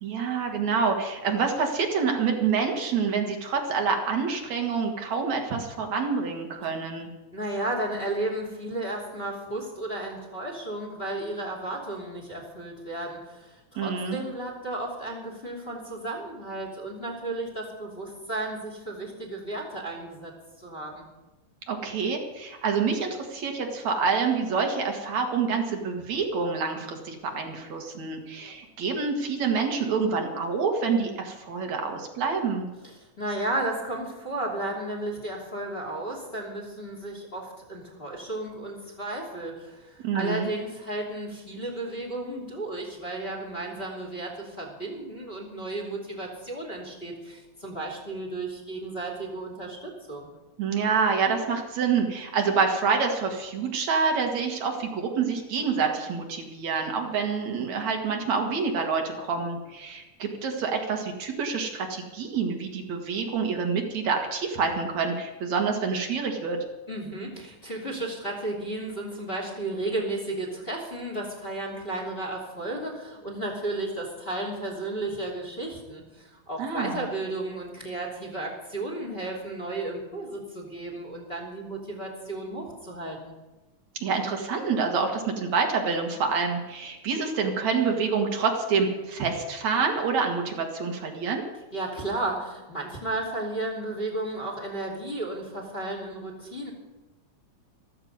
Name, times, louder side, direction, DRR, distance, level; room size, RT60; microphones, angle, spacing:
voice 1, 0.0-7.1 13.8-14.2 21.7-32.7 40.0-40.5 50.6-66.6 76.6-77.0 84.0-91.4, right 5 dB, 65° right, 3 dB, 2.9 m, -27 dB
voice 2, 7.3-20.3 20.6-21.1 33.0-50.3 66.9-83.3 91.7-96.7, right 2 dB, 20° left, 1 dB, 2.9 m, -33 dB
14.5 x 14.0 x 5.4 m, 1.1 s
omnidirectional pair, 3.4 m